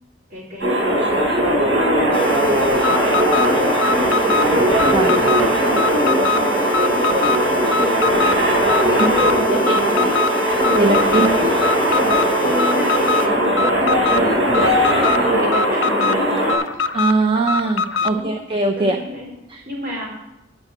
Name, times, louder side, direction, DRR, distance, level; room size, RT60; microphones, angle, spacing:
voice 1, 0.3-1.1 1.4-4.5 4.9-6.5 6.8-7.5 8.9-10.2 10.7-10.9 12.4-16.6 18.1-18.3 18.7-19.3 19.7-20.1, equal, 50° right, -3 dB, 4.5 m, -31 dB
sound 1, 0.6-16.5, equal, 90° right, 3.9 m, -18 dB
sound 2, 2.1-13.3, equal, 10° left, 0.9 m, -28 dB
Alarm, 2.7-18.2, left 4 dB, 85° left, 0.5 m, -23 dB
voice 2, 4.9-5.2 9.0-9.7 10.7-11.3 12.0-12.1 16.9-19.0 19.5-19.6, right 3 dB, 25° right, 3 dB, 0.7 m, -21 dB
8.9 x 6.3 x 8.4 m, 0.91 s
head